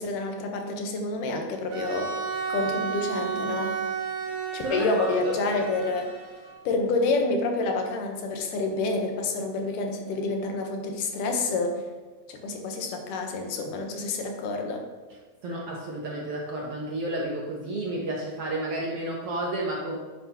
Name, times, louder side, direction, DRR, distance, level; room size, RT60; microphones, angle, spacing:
voice 1, 0.0-2.1 2.5-3.8 4.5-6.1 6.7-11.8 12.3-14.8, left 3 dB, 90° left, 3 dB, 2.6 m, -28 dB
Bowed string instrument, 1.7-6.7, right 5 dB, 50° right, 2.1 m, -32 dB
voice 2, 4.6-5.3 15.4-20.0, right 1 dB, 70° right, -2 dB, 1.4 m, -31 dB
9.9 x 7.9 x 2.9 m, 1.3 s
omnidirectional pair, 3.7 m